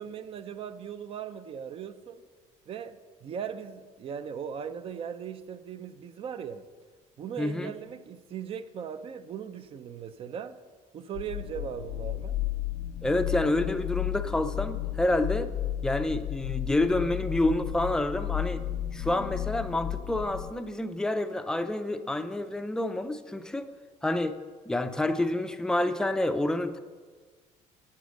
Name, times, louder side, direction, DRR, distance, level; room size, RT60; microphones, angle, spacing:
voice 1, 0.0-2.2 2.7-6.7 7.2-10.6 10.9-12.4, right 8 dB, 45° right, 12 dB, 0.5 m, -38 dB
voice 2, 7.4-7.7 13.0-15.5 15.8-18.6 18.9-23.7 24.0-24.4 24.7-26.8, left 1 dB, 5° left, 9 dB, 0.5 m, -28 dB
sound 1, 11.1-20.5, left 12 dB, 85° left, 0.5 m, -33 dB
8.3 x 7.9 x 6.4 m, 1.5 s
cardioid pair, 145°, 13 cm